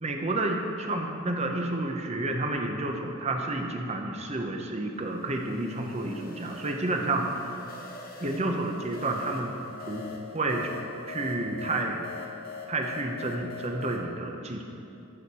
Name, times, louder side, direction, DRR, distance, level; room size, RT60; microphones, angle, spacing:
voice 1, 0.0-7.6 8.2-9.5 9.9-10.1 10.3-10.7 11.1-12.1 12.7-14.6, right 2 dB, 30° right, 3 dB, 0.8 m, -30 dB
sound 1, 5.0-14.1, left 5 dB, 45° left, 1.0 m, -43 dB
14.0 x 6.5 x 4.3 m, 2.7 s
head